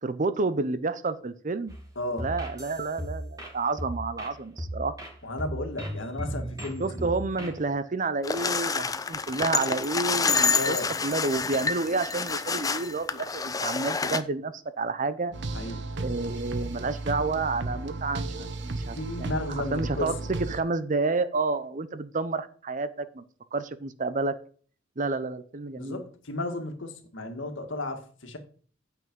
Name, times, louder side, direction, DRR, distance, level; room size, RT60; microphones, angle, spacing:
voice 1, 0.0-1.8 2.1-5.0 6.8-15.3 16.0-23.2 23.5-24.3 25.0-26.0, right 3 dB, 40° right, 13 dB, 0.7 m, -30 dB
sound 1, 1.7-7.7, equal, 20° right, 2.5 m, -37 dB
voice 2, 2.0-2.3 5.2-7.1 10.5-10.9 15.5-15.8 19.0-20.1 25.8-28.4, left 2 dB, 75° left, 5 dB, 2.0 m, -34 dB
sound 2, 8.2-14.2, left 5 dB, 20° left, 0.6 m, -28 dB
sound 3, 15.3-20.6, right 2 dB, 65° right, 1.0 m, -34 dB
9.1 x 6.0 x 5.3 m, 0.43 s
head